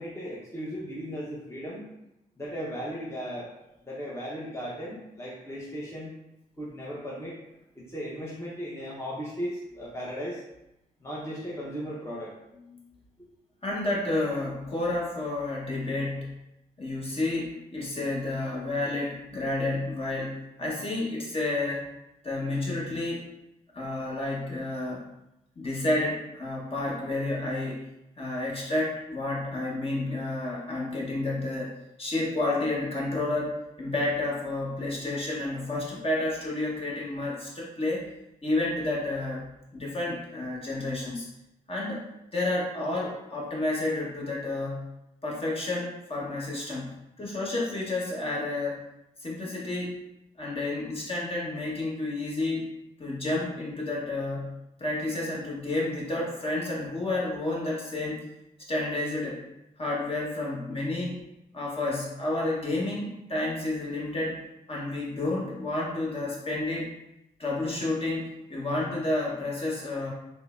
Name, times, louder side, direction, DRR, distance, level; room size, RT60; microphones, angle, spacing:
voice 1, 0.0-1.9 2.4-3.5 3.8-6.1 6.6-7.4 7.7-10.4 11.0-12.3, equal, 15° left, -6 dB, 0.8 m, -36 dB
voice 2, 13.6-16.3 16.8-21.9 22.2-23.3 23.7-25.0 25.6-27.8 28.2-31.7 32.0-38.1 38.4-39.5 39.7-41.2 41.7-42.0 42.3-44.9 45.2-46.9 47.2-48.9 49.2-49.9 50.4-52.6 53.0-58.3 58.7-59.4 59.8-61.2 61.5-64.4 64.7-66.9 67.4-70.1, left 2 dB, 35° left, -4 dB, 1.1 m, -30 dB
3.7 x 2.0 x 2.5 m, 0.87 s
supercardioid pair, 50°, 17 cm